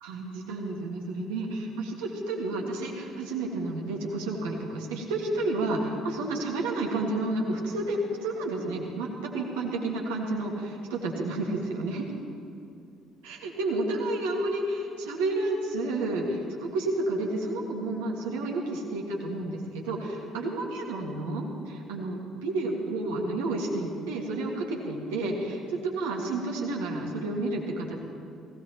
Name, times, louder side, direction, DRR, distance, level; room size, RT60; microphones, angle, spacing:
voice 1, 0.0-9.1 9.3-12.1 13.2-28.0, right 2 dB, 70° right, -1 dB, 1.8 m, -31 dB
19.5 x 16.0 x 3.0 m, 2.6 s
figure-of-eight pair, 50°, 0 cm